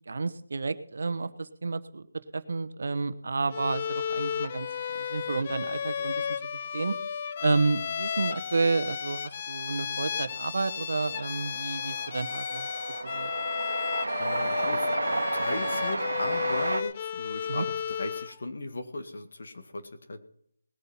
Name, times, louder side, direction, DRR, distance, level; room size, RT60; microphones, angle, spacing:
voice 1, 0.1-2.0 2.3-6.3 6.5-6.9 7.4-12.7 13.0-13.3 17.5-17.6, right 3 dB, 50° right, 11 dB, 1.1 m, -30 dB
Bowed string instrument, 3.5-18.4, left 7 dB, 25° left, 0.4 m, -33 dB
Train, 9.4-9.5 9.7-16.8, right 2 dB, 85° right, 1.4 m, -32 dB
voice 2, 14.2-20.2, left 2 dB, 50° left, 7 dB, 2.2 m, -37 dB
19.5 x 8.4 x 5.8 m, 0.69 s
figure-of-eight pair, 175°, 0 cm